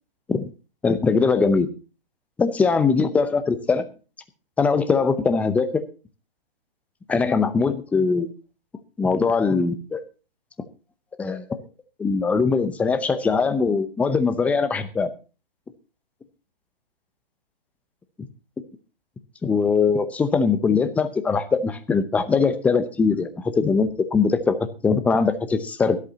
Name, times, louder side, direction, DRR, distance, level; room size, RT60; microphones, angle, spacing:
voice 1, 0.8-1.7 2.4-3.8 4.6-5.8 7.1-8.3 9.0-10.0 11.2-11.6 12.0-15.1 19.4-24.6 24.8-26.0, left 4 dB, 5° left, 11 dB, 0.6 m, -21 dB
23.5 x 8.3 x 2.8 m, 0.34 s
hypercardioid pair, 140°, 30 cm